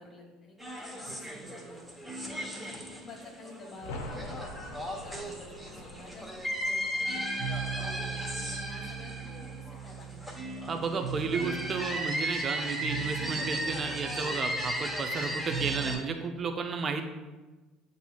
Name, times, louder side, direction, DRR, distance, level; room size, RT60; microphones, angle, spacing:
voice 1, 0.0-1.8 2.3-4.0 4.3-7.2 7.7-10.2, left 2 dB, 40° left, -5 dB, 1.1 m, -50 dB
sound 1, 0.6-16.0, right 1 dB, 5° right, 1.0 m, -35 dB
sound 2, 3.8-9.3 9.6-9.7, left 1 dB, 75° left, 0.6 m, -45 dB
voice 2, 10.7-17.1, right 4 dB, 40° right, 5 dB, 0.5 m, -33 dB
7.9 x 2.8 x 2.3 m, 1.2 s
hypercardioid pair, 65°, 0 cm